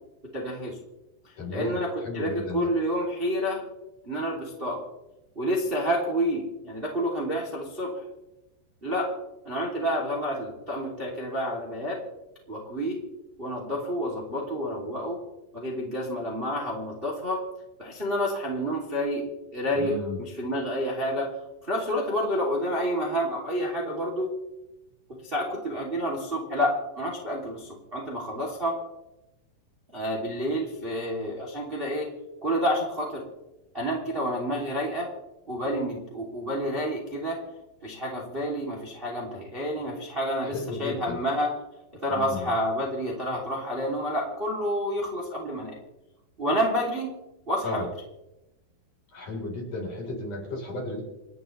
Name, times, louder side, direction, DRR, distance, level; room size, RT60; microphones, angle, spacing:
voice 1, 0.3-0.8 1.5-3.6 4.0-4.8 5.4-8.0 8.8-9.1 9.4-12.0 12.5-13.0 13.4-15.2 15.5-17.4 17.8-19.2 19.5-21.3 21.6-24.3 25.2-28.7 29.9-32.1 32.4-33.2 33.7-35.1 35.5-37.4 37.8-41.5 42.0-45.7 46.4-47.1 47.5-47.9, equal, 15° right, -2 dB, 2.4 m, -29 dB
voice 2, 1.4-2.7 19.7-20.2 40.4-41.2 42.1-42.5 47.6-47.9 49.1-51.0, left 2 dB, 45° left, -1 dB, 5.5 m, -34 dB
29.0 x 11.0 x 3.3 m, 0.95 s
omnidirectional pair, 5.0 m